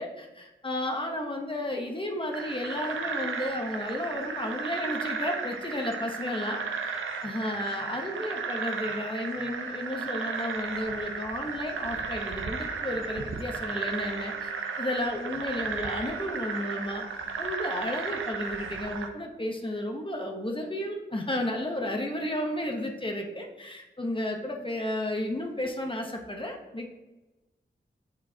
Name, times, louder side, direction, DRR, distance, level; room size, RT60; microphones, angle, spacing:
voice 1, 0.0-14.5 14.8-17.1 17.4-26.9, left 1 dB, 25° left, 1 dB, 0.9 m, -33 dB
sound 1, 2.3-19.1, right 5 dB, 90° right, 0.6 m, -34 dB
6.9 x 5.1 x 2.8 m, 1.1 s
cardioid pair, 50°, 20 cm